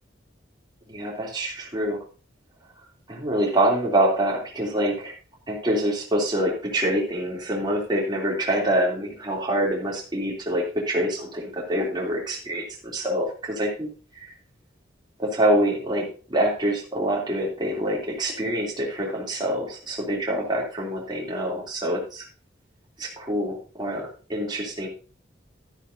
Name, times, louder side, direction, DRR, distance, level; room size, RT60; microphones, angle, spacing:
voice 1, 0.9-2.0 3.1-5.1 5.5-13.9 14.1-14.3 15.2-22.2 23.0-24.9, right 1 dB, 25° right, -2 dB, 3.2 m, -25 dB
12.5 x 9.8 x 2.8 m, 0.37 s
head